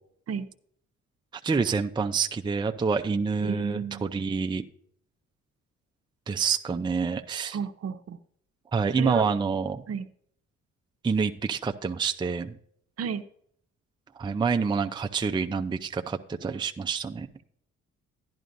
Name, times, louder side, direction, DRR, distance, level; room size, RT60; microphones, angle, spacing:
voice 1, 1.4-4.7 6.3-7.6 8.7-9.8 11.0-12.6 14.2-17.3, right 5 dB, 15° right, 6 dB, 0.5 m, -27 dB
voice 2, 3.4-4.1 7.5-8.2 9.0-9.3 9.9-10.1 13.0-13.2, right 7 dB, 55° right, 10 dB, 0.7 m, -32 dB
11.0 x 10.5 x 2.6 m, 0.66 s
cardioid pair, 90°, 30 cm